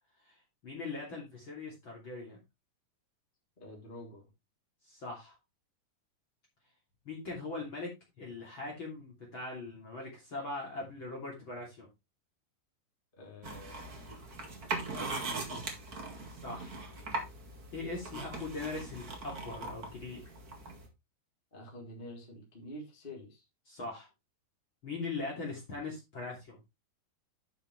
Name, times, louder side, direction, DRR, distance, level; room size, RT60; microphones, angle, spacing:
voice 1, 0.6-2.4 4.8-5.3 7.0-7.9 8.2-11.9 16.3-16.8 17.7-20.2 23.7-24.1 24.8-26.6, left 3 dB, 30° left, -1 dB, 3.1 m, -40 dB
voice 2, 3.6-4.2 13.2-14.3 14.9-15.7 21.5-23.5, left 1 dB, 15° left, -2 dB, 2.7 m, -48 dB
sound 1, 13.4-20.9, right 3 dB, 55° right, 1.0 m, -40 dB
11.0 x 6.7 x 3.2 m, 0.23 s
omnidirectional pair, 4.9 m